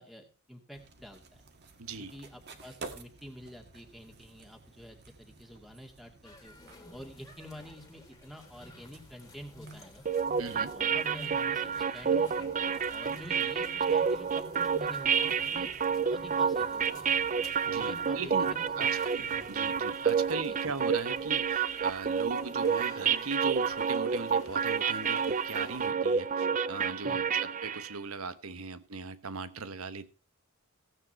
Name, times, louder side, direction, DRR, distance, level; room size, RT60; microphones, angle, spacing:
voice 1, 0.0-1.4 2.0-6.6 6.9-10.0 10.5-15.7 16.0-17.1 17.7-18.9 19.3-19.5 20.2-20.6 27.0-27.4, equal, ahead, 2.3 m, -49 dB
sound 1, 0.7-19.9, right 3 dB, 50° right, 1.8 m, -54 dB
voice 2, 1.8-2.1 10.4-10.7 17.7-18.5 18.8-30.1, right 4 dB, 80° right, 1.2 m, -39 dB
sound 2, 6.2-25.9, left 1 dB, 15° left, 2.5 m, -52 dB
sound 3, 10.1-27.9, right 6 dB, 35° right, 0.6 m, -29 dB
16.0 x 8.7 x 4.3 m
head